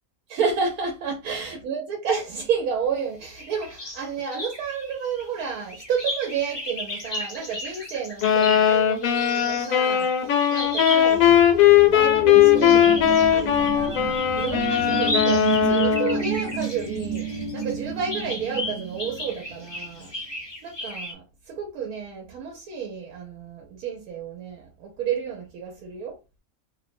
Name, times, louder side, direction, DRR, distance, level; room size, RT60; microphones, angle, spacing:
voice 1, 0.3-10.1 10.5-11.4 11.7-20.1 20.6-26.2, right 6 dB, 90° right, 1.1 m, -31 dB
sound 1, 3.4-4.0 4.3-11.3 12.4-17.7 18.1-21.1, left 1 dB, 35° left, 0.4 m, -34 dB
sound 2, 8.2-16.2, left 10 dB, 75° left, 1.0 m, -19 dB
sound 3, 10.8-20.1, right 4 dB, 35° right, 0.5 m, -31 dB
2.6 x 2.0 x 2.5 m
omnidirectional pair, 1.5 m